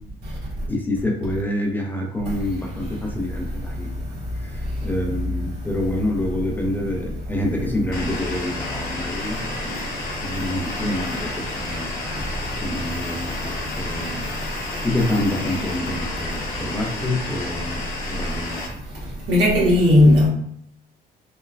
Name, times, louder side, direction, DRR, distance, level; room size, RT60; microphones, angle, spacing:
voice 1, 0.7-4.0 4.4-9.8 10.2-11.9 12.6-14.3 14.8-17.8 18.1-18.6, left 1 dB, 10° left, 0.4 m, -27 dB
sound 1, 7.9-18.7, left 2 dB, 60° left, 0.8 m, -31 dB
voice 2, 19.3-20.3, left 1 dB, 75° right, 1.2 m, -14 dB
3.3 x 2.2 x 2.2 m
cardioid pair, 110°, 17 cm